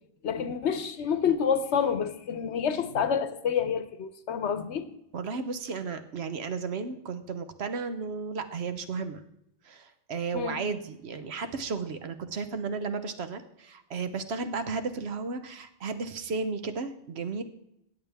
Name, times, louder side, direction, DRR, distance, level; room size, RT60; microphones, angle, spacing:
voice 1, 0.2-4.9 10.3-10.6, left 7 dB, 70° left, 1.1 m, -28 dB
voice 2, 5.1-9.2 9.6-17.4, right 4 dB, 60° right, 1.0 m, -34 dB
16.0 x 8.8 x 3.5 m
omnidirectional pair, 1.2 m